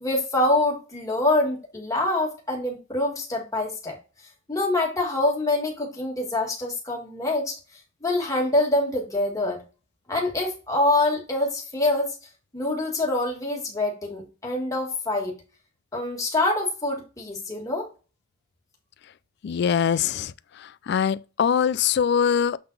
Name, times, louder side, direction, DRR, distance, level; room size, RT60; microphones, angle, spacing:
voice 1, 0.0-4.0 4.5-7.5 8.0-9.6 10.1-12.1 12.5-15.3 15.9-17.9, left 2 dB, 15° left, 1.9 m, -25 dB
voice 2, 19.4-20.3 20.9-22.6, left 7 dB, 55° left, 0.3 m, -22 dB
7.7 x 3.8 x 4.0 m
head